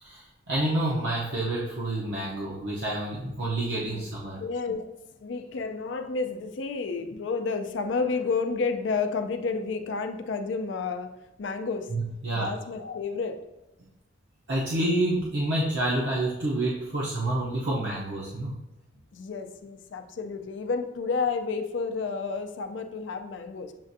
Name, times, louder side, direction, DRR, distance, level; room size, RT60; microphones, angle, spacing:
voice 1, 0.0-4.4 11.9-12.5 14.5-18.6, right 1 dB, 65° right, -5 dB, 0.7 m, -28 dB
voice 2, 4.4-4.9 5.2-11.1 11.4-11.9 12.3-13.4 19.1-23.7, left 4 dB, 70° left, 7 dB, 0.4 m, -30 dB
7.3 x 2.5 x 2.6 m, 0.95 s
head